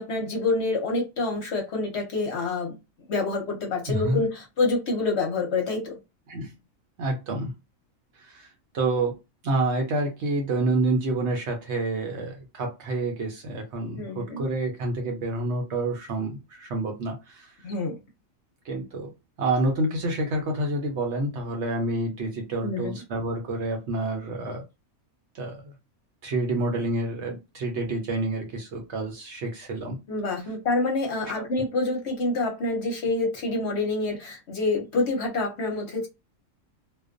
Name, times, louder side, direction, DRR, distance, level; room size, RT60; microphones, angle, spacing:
voice 1, 0.0-2.8 3.1-5.9 14.0-14.5 17.6-18.0 22.6-23.0 30.1-36.1, left 3 dB, 60° left, 0.9 m, -27 dB
voice 2, 3.9-4.2 6.3-6.5 7.0-7.5 8.2-8.5 8.7-9.2 9.4-17.5 18.6-19.1 19.4-24.6 25.3-25.7 26.2-30.0, right 2 dB, 60° right, 0.8 m, -28 dB
2.3 x 2.2 x 2.4 m
omnidirectional pair, 1.5 m